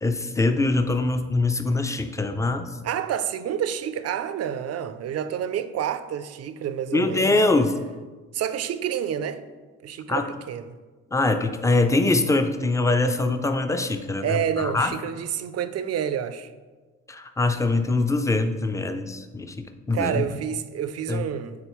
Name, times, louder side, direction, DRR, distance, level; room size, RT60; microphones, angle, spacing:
voice 1, 0.0-2.7 6.9-7.8 10.1-10.3 11.1-14.9 17.1-20.3 21.1-21.3, left 2 dB, 10° left, 0.4 m, -23 dB
voice 2, 2.8-7.3 8.3-9.4 9.8-10.8 14.2-16.5 19.9-21.6, right 9 dB, 55° right, 0.5 m, -28 dB
8.7 x 3.8 x 3.1 m
cardioid pair, 90°, 30 cm